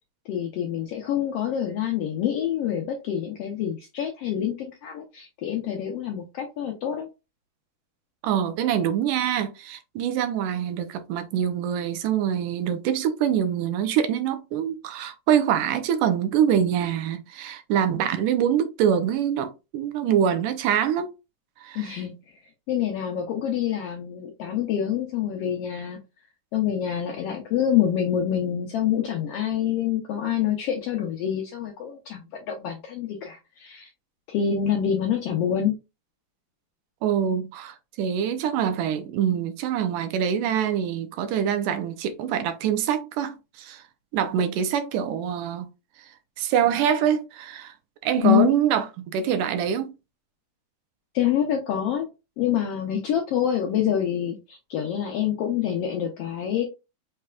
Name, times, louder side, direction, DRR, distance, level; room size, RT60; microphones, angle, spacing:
voice 1, 0.3-7.1 21.7-22.1 22.7-26.0 26.5-33.9 34.3-35.7 48.2-48.5 51.1-52.1 52.4-56.6, left 10 dB, 75° left, 1.4 m, -26 dB
voice 2, 8.2-21.1 21.6-22.0 37.0-43.8 44.1-45.7 46.4-47.7 48.0-49.9, right 9 dB, 90° right, 2.3 m, -25 dB
5.8 x 3.3 x 2.3 m
omnidirectional pair, 3.6 m